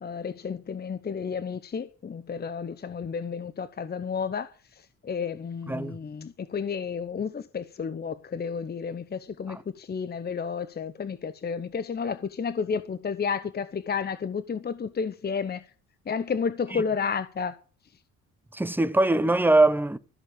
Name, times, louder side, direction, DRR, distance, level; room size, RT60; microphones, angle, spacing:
voice 1, 0.0-4.5 5.0-15.6 16.1-17.5, left 6 dB, 35° left, 0.9 m, -31 dB
voice 2, 5.7-6.0 9.5-9.6 16.7-16.8 18.5-20.0, right 2 dB, 5° right, 1.0 m, -22 dB
14.0 x 6.5 x 8.9 m
cardioid pair, 90°, 30 cm